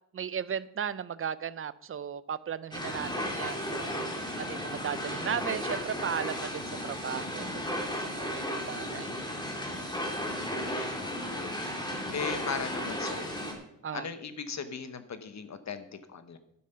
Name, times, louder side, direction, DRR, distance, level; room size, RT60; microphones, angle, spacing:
voice 1, 0.1-7.5 7.9-9.2 13.8-14.1, right 8 dB, 40° right, 17 dB, 0.5 m, -36 dB
sound 1, 2.7-13.5, equal, 10° left, 2.2 m, -34 dB
voice 2, 10.2-13.4 13.9-16.4, left 6 dB, 50° left, 11 dB, 1.1 m, -39 dB
11.5 x 8.5 x 5.6 m, 0.76 s
wide cardioid pair, 150°, 34 cm